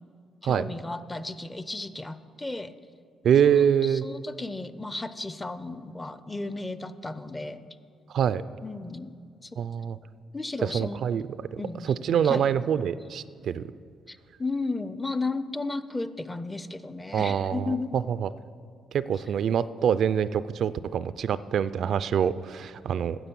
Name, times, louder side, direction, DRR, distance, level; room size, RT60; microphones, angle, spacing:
voice 1, 0.4-2.7 3.4-7.8 8.6-9.1 9.4-9.6 10.3-11.0 11.6-11.9 12.2-12.5 14.1-18.0, left 3 dB, 15° left, 13 dB, 0.5 m, -34 dB
voice 2, 3.2-4.0 8.1-8.4 9.6-10.0 10.6-11.2 11.5-13.6 17.1-18.3 18.9-23.2, right 8 dB, 65° right, 15 dB, 0.3 m, -25 dB
10.0 x 7.6 x 7.0 m, 2.3 s
cardioid pair, 90°, 0 cm